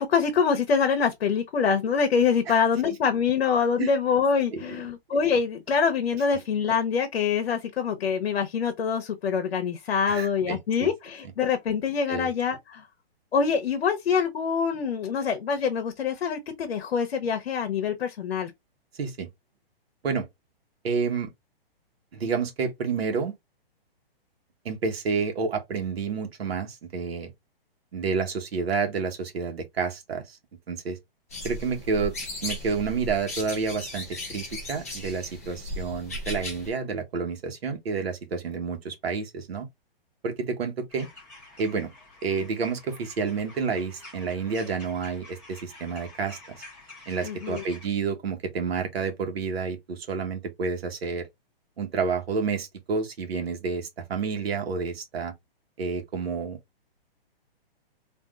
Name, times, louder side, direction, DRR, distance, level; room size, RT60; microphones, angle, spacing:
voice 1, 0.0-12.9 13.3-18.5 47.2-47.6, left 6 dB, 80° left, 0.8 m, -25 dB
voice 2, 10.1-10.9 12.1-12.3 19.0-19.3 20.0-20.3 20.8-21.3 22.1-23.4 24.6-27.3 27.9-30.4 30.7-31.0 31.4-32.1 32.4-39.7 40.2-41.1 41.6-41.9 42.2-46.6 47.1-51.3 51.8-55.3 55.8-56.6, right 5 dB, 85° right, 1.1 m, -29 dB
sound 1, 31.3-36.7, left 1 dB, 15° left, 0.4 m, -36 dB
sound 2, 40.9-47.9, left 2 dB, 5° right, 0.8 m, -48 dB
3.6 x 2.5 x 2.3 m
hypercardioid pair, 175°, 30 cm